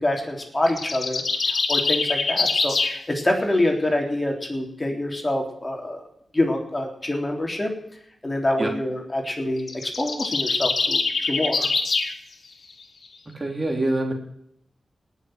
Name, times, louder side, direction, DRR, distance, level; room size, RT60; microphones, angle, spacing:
voice 1, 0.0-6.0 6.3-7.7 8.2-11.7, left 1 dB, 25° left, 2 dB, 3.5 m, -26 dB
sound 1, 0.7-3.0 9.6-12.1, left 4 dB, 70° left, 1.7 m, -24 dB
voice 2, 13.3-14.1, right 1 dB, 30° right, 2 dB, 3.2 m, -25 dB
18.5 x 6.8 x 7.9 m, 0.73 s
cardioid pair, 65°, 0 cm